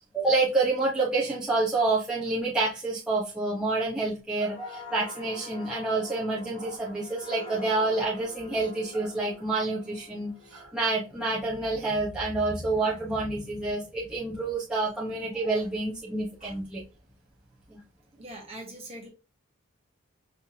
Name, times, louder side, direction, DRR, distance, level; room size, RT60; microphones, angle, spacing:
voice 1, 0.1-16.8 17.7-17.8, right 3 dB, 5° right, -8 dB, 0.9 m, -28 dB
sound 1, 4.4-11.9 12.3-12.6, left 3 dB, 70° left, 2.0 m, -46 dB
voice 2, 18.1-19.1, right 1 dB, 25° right, 1 dB, 1.4 m, -42 dB
5.7 x 3.4 x 2.8 m, 0.31 s
head